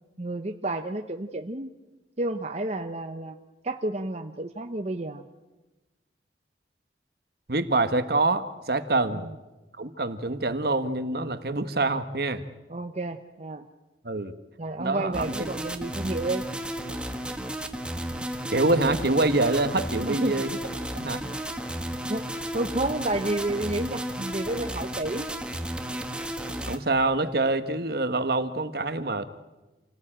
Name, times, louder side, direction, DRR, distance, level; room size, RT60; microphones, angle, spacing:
voice 1, 0.2-1.7 2.2-3.4 3.6-5.3 9.1-9.3 12.7-13.6 14.6-16.4 20.0-20.4 22.1-25.3, right 2 dB, 40° right, 5 dB, 0.9 m, -31 dB
voice 2, 7.5-9.3 9.7-12.4 14.0-14.3 14.8-15.5 18.5-20.6 20.9-21.2 26.7-29.2, right 2 dB, 60° right, 10 dB, 1.4 m, -25 dB
sound 1, 15.1-26.8, right 1 dB, 5° right, 1.6 m, -33 dB
27.5 x 18.0 x 8.9 m, 1.1 s
head